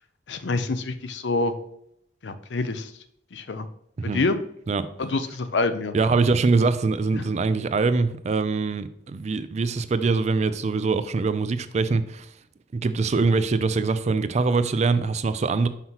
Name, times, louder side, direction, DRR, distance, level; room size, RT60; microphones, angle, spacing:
voice 1, 0.3-1.5 2.2-2.9 3.3-3.7 4.0-4.4 5.0-6.0 7.1-7.2, left 3 dB, 90° left, 0.6 m, -26 dB
voice 2, 5.9-12.3 12.7-15.7, right 4 dB, 40° right, 0.4 m, -23 dB
5.7 x 5.6 x 2.9 m
head